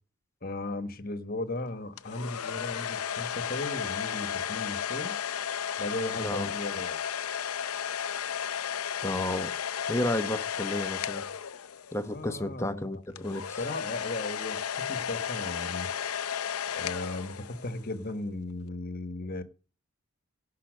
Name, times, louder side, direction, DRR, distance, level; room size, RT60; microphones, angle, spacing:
voice 1, 0.4-5.1 5.8-7.0 12.1-14.6 14.9-15.9 16.7-19.4, left 2 dB, 40° left, 1.4 m, -36 dB
sound 1, 2.0-12.1 13.2-17.9, left 8 dB, 90° left, 0.7 m, -34 dB
voice 2, 6.2-6.5 9.0-9.5 9.9-11.2 11.9-13.6, left 1 dB, 10° left, 1.0 m, -32 dB
17.0 x 5.7 x 6.4 m
head